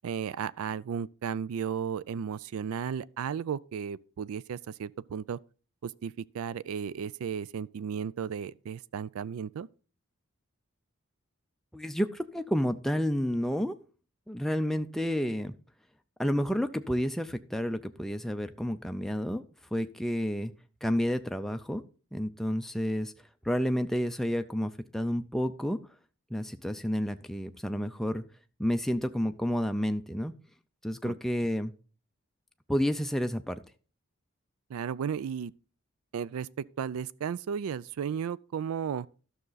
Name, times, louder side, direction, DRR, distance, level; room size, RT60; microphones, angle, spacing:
voice 1, 0.0-5.4 5.8-9.7 31.0-31.1 34.7-35.5 36.1-36.5 36.8-39.1, right 7 dB, 80° right, 0.3 m, -34 dB
voice 2, 11.7-13.8 14.3-15.5 16.2-19.5 19.7-20.5 20.8-21.8 22.1-23.1 23.4-25.8 26.3-28.2 28.6-30.3 30.8-31.7 32.7-33.6, equal, ahead, 0.4 m, -30 dB
12.5 x 6.5 x 3.9 m
head